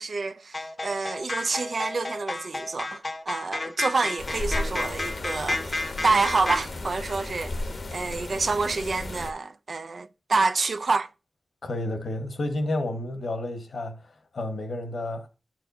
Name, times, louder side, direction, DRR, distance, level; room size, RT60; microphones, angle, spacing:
voice 1, 0.0-7.5 7.9-11.1, right 4 dB, 60° right, 0.4 m, -28 dB
sound 1, 0.5-6.6, left 2 dB, 30° left, 0.7 m, -32 dB
sound 2, 4.2-9.3, left 2 dB, 60° left, 0.8 m, -34 dB
voice 2, 11.6-15.3, left 1 dB, 75° left, 1.1 m, -31 dB
12.0 x 4.4 x 2.6 m
wide cardioid pair, 105°, 0 cm